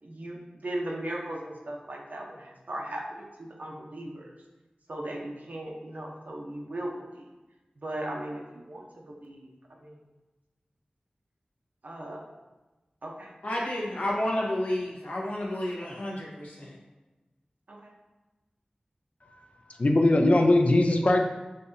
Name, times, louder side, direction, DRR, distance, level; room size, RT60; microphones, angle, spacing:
voice 1, 0.0-4.3 4.9-7.2 7.8-9.5 9.8-10.0 11.8-12.2 13.0-13.4 17.7-17.9, right 1 dB, 70° right, -1 dB, 0.7 m, -37 dB
voice 2, 13.4-16.8, left 1 dB, 70° left, -4 dB, 1.1 m, -31 dB
voice 3, 19.2-21.2, left 2 dB, 50° left, 3 dB, 0.4 m, -22 dB
6.5 x 2.7 x 2.7 m, 1.1 s
wide cardioid pair, 55°, 3 cm